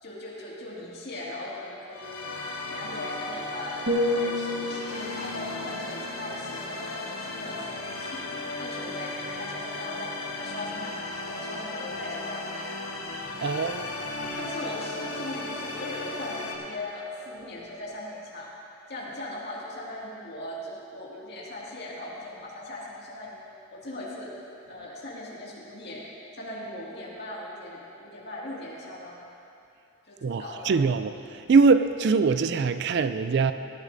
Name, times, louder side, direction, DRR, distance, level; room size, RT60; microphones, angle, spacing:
voice 1, 0.0-12.7 13.4-13.8 14.4-18.5 18.9-23.4 23.7-24.3 24.7-29.2 30.1-30.8, left 1 dB, 50° left, -5 dB, 2.2 m, -39 dB
sound 1, 1.9-16.6, left 2 dB, 90° left, 1.4 m, -36 dB
sound 2, 3.9-7.8 8.2-8.5, left 1 dB, 80° right, 1.5 m, -32 dB
voice 2, 13.4-13.9 14.2-14.5 30.2-31.1 31.5-33.5, right 4 dB, 50° right, 11 dB, 0.3 m, -22 dB
17.5 x 12.0 x 2.7 m, 2.7 s
head